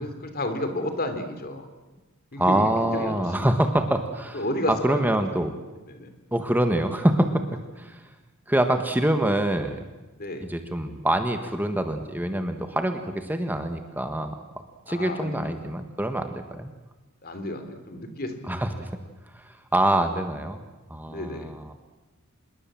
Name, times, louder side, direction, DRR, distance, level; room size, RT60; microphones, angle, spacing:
voice 1, 0.0-1.7 2.3-3.6 4.3-5.0 5.3-5.5 5.9-6.1 10.2-10.5 14.9-15.5 17.2-18.5 21.1-21.5, left 1 dB, 45° left, 8 dB, 3.2 m, -32 dB
voice 2, 2.4-4.4 4.8-5.5 6.3-7.4 7.8-8.0 8.5-9.8 10.5-14.4 14.9-16.7 18.5-19.0 19.3-20.6 20.9-21.7, right 1 dB, 10° right, 6 dB, 1.5 m, -25 dB
27.0 x 21.5 x 7.6 m, 1.1 s
head